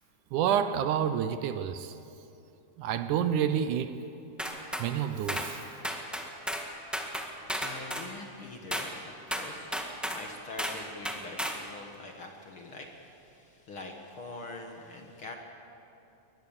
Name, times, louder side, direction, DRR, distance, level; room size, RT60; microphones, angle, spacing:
voice 1, 0.3-1.9 2.8-4.0 4.8-5.6, right 9 dB, 75° right, 10 dB, 2.1 m, -28 dB
sound 1, 4.4-4.9 5.3-5.5 5.8-6.7 6.9-8.1 8.7-8.9 9.3-10.2 10.6-10.8 11.0-11.6, equal, ahead, 0.3 m, -33 dB
voice 2, 6.4-15.4, left 2 dB, 50° left, 2 dB, 1.9 m, -45 dB
22.5 x 20.0 x 7.2 m, 2.8 s
omnidirectional pair, 3.8 m